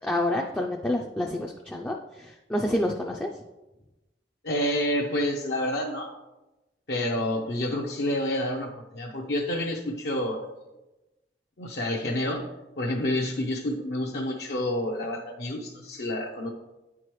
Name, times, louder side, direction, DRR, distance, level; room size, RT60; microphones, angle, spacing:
voice 1, 0.0-3.3, left 1 dB, 10° left, 1 dB, 0.3 m, -28 dB
voice 2, 4.4-6.1 6.9-10.5 11.6-12.5 12.8-16.5, left 1 dB, 60° left, -1 dB, 0.6 m, -29 dB
9.4 x 4.8 x 3.0 m, 1.0 s
head